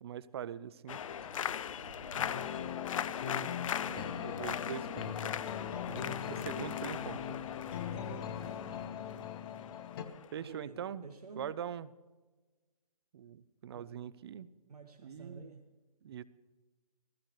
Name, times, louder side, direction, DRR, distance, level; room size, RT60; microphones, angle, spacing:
voice 1, 0.0-1.0 3.2-5.4 5.9-7.4 10.3-11.0 11.4-11.9 13.1-14.5 15.0-15.5 16.0-16.2, right 9 dB, 40° right, 17 dB, 0.5 m, -43 dB
sound 1, 0.9-10.6, left 9 dB, 60° left, 0.4 m, -40 dB
sound 2, 0.9-8.9, right 5 dB, 70° right, 1.0 m, -56 dB
voice 2, 2.1-2.5 7.9-8.3 10.4-11.5 13.7-14.0 14.7-15.7, right 4 dB, 85° right, 3 dB, 1.4 m, -50 dB
sound 3, 2.2-10.1, left 9 dB, 40° left, 0.9 m, -40 dB
16.5 x 14.5 x 3.2 m, 1.3 s
hypercardioid pair, 150°, 19 cm